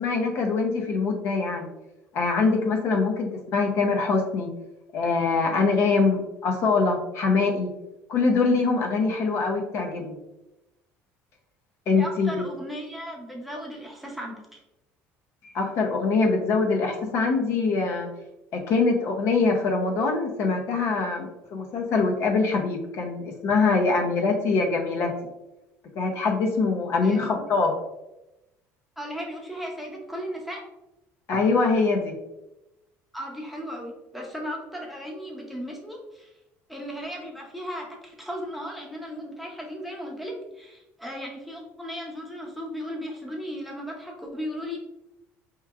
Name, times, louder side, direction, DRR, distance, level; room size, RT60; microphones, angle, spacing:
voice 1, 0.0-1.7 2.1-4.5 4.9-7.7 8.1-10.2 11.9-12.5 15.4-18.1 18.5-25.1 26.0-27.8 31.3-32.1, left 4 dB, 55° left, 2 dB, 0.6 m, -23 dB
voice 2, 12.0-14.6 27.0-27.4 29.0-30.6 33.1-36.3 36.7-44.8, equal, ahead, -2 dB, 0.7 m, -36 dB
4.6 x 2.9 x 2.3 m, 0.94 s
cardioid pair, 145°, 6 cm